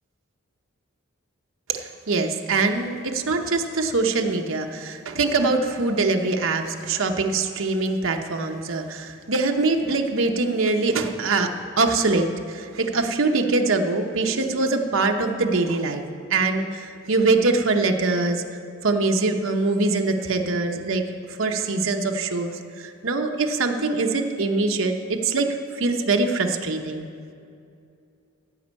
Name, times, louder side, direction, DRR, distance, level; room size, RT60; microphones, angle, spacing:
voice 1, 1.7-11.5 11.8-16.0 16.3-18.4 18.8-27.1, right 3 dB, 70° right, 4 dB, 0.9 m, -23 dB
15.0 x 5.4 x 8.2 m, 2.5 s
head